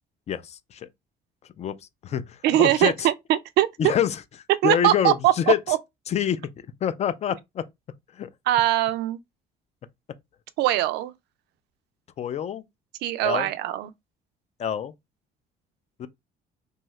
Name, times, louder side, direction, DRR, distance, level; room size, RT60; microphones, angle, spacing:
voice 1, 0.3-0.9 1.6-3.1 3.8-4.2 4.6-5.6 6.1-6.4 6.8-7.6 8.1-8.3 12.2-12.6 13.2-13.5 14.6-14.9 16.0-16.1, left 9 dB, 40° left, 0.4 m, -26 dB
voice 2, 2.4-3.7 4.6-5.3 5.7-5.8 8.5-9.2 10.6-11.1 13.0-13.9, right 14 dB, 80° right, 0.4 m, -21 dB
2.7 x 2.3 x 3.1 m
cardioid pair, 110°, 17 cm